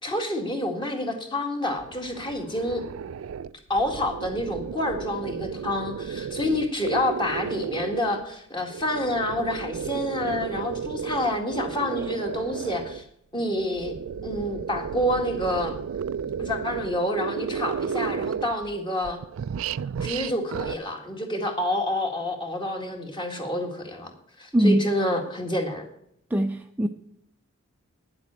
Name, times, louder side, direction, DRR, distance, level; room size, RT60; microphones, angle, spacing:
voice 1, 0.0-2.8 3.7-13.0 13.3-14.0 14.2-15.7 16.4-19.2 20.0-24.1 24.4-25.8, left 1 dB, 25° left, 3 dB, 1.9 m, -28 dB
sound 1, 1.7-8.2 8.7-13.0 13.6-18.8 19.0-20.8, right 7 dB, 75° right, 0.4 m, -33 dB
voice 2, 24.5-24.9 26.3-26.9, equal, 10° right, 4 dB, 0.4 m, -21 dB
9.8 x 7.7 x 8.6 m, 0.74 s
head